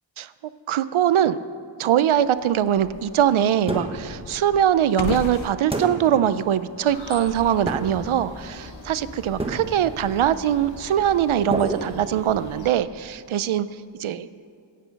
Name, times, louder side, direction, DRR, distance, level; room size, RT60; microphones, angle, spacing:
voice 1, 0.7-1.4 1.8-13.7 14.0-14.3, right 10 dB, 75° right, 14 dB, 0.6 m, -22 dB
sound 1, 2.0-8.0, left 6 dB, 75° left, 0.9 m, -38 dB
sound 2, 3.7-4.2 5.7-6.3 7.7-8.2 9.4-10.0 11.5-12.5, right 2 dB, 10° right, 1.2 m, -30 dB
sound 3, 6.9-12.7, left 1 dB, 40° left, 3.9 m, -41 dB
24.5 x 8.5 x 5.2 m, 2.3 s
wide cardioid pair, 175°, 49 cm